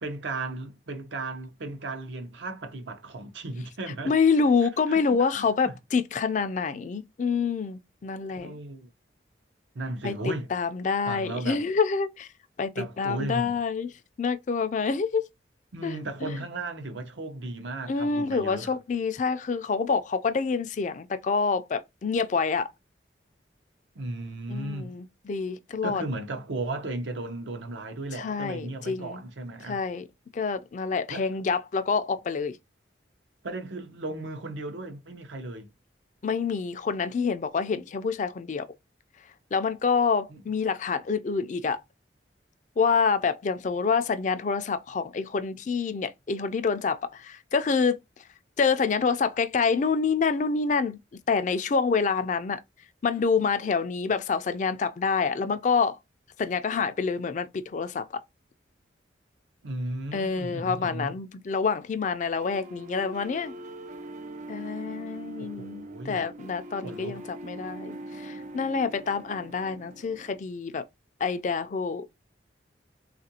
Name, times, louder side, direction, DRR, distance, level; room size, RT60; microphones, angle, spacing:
voice 1, 0.0-4.1 4.9-5.8 8.4-8.9 9.7-10.5 11.1-11.6 12.8-13.6 15.7-18.7 24.0-25.0 25.8-29.8 31.1-31.3 33.4-35.7 40.3-40.4 59.6-61.2 65.4-66.3 66.8-67.2, right 2 dB, 75° right, 0.7 m, -35 dB
voice 2, 4.0-8.6 10.0-12.3 12.6-13.9 14.2-15.2 15.8-16.0 16.2-16.4 17.9-22.7 24.5-26.0 28.2-29.2 29.7-30.0 30.3-32.6 36.2-38.7 39.5-41.8 42.8-48.0 48.6-51.0 51.3-52.6 53.0-56.0 56.4-58.2 60.1-63.5 64.5-70.8 71.2-72.0, left 5 dB, 40° left, 0.3 m, -27 dB
sound 1, 62.4-70.4, right 1 dB, 40° right, 0.3 m, -42 dB
3.5 x 2.5 x 2.7 m
head